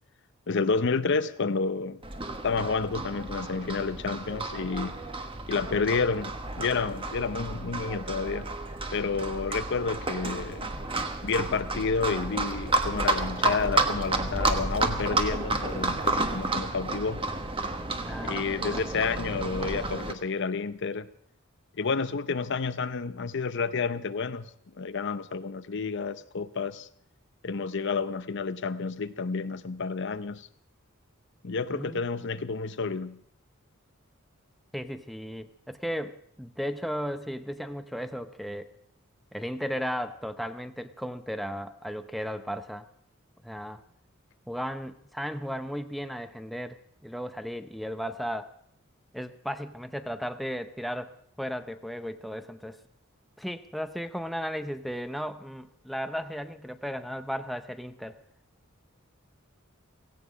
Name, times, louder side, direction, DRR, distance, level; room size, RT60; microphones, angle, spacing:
voice 1, 0.5-2.0 2.4-4.9 5.5-8.5 8.9-10.7 11.2-17.2 18.2-21.1 21.8-24.5 24.8-26.9 27.4-30.5 31.4-33.2, left 4 dB, 60° left, 13 dB, 0.7 m, -30 dB
Livestock farm animals working animals, 2.0-20.1, right 2 dB, 25° right, 1.3 m, -31 dB
voice 2, 18.0-18.9 31.7-32.0 34.7-38.7 39.3-42.9 43.4-43.8 44.5-46.8 47.0-48.5 49.1-52.8 53.4-58.2, equal, ahead, 8 dB, 0.7 m, -35 dB
17.0 x 16.5 x 5.1 m, 0.67 s
head